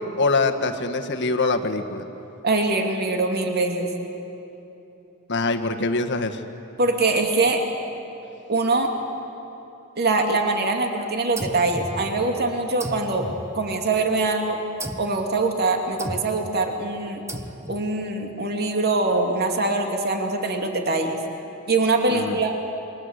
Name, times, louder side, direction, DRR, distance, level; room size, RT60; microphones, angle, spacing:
voice 1, 0.0-2.0 5.3-6.4 22.1-22.4, left 3 dB, 55° left, 5 dB, 1.6 m, -24 dB
voice 2, 2.4-3.9 6.8-7.6 8.5-8.9 10.0-13.2 13.5-14.6 15.0-17.2 17.7-21.2 21.7-22.5, right 3 dB, 45° right, 3 dB, 2.6 m, -23 dB
sound 1, 11.4-12.4 12.8-14.1 14.8-15.2 16.0-16.5 17.3-17.9, right 1 dB, 15° right, 1.2 m, -35 dB
29.0 x 24.5 x 8.3 m, 3.0 s
head